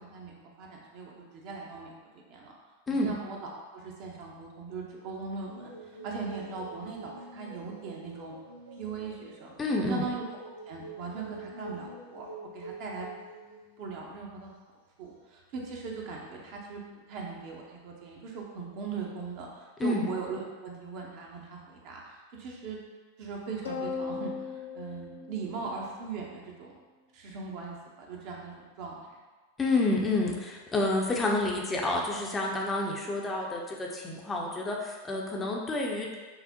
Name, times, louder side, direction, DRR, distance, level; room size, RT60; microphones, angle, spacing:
voice 1, 0.0-1.9 2.3-2.6 2.9-8.3 8.8-9.5 9.8-12.3 12.5-13.1 13.8-14.5 15.0-16.8 17.1-22.8 23.2-26.8 27.1-29.0, right 4 dB, 45° right, -1 dB, 0.7 m, -39 dB
sound 1, 5.5-13.7 15.1-15.2, right 2 dB, 80° right, 0.8 m, -46 dB
voice 2, 9.6-10.0 19.8-20.1 29.6-36.2, left 2 dB, 15° left, -1 dB, 0.5 m, -29 dB
sound 2, 23.6-26.2, left 5 dB, 65° left, 0.5 m, -38 dB
5.6 x 2.1 x 2.8 m, 1.3 s
figure-of-eight pair, 90°, 0 cm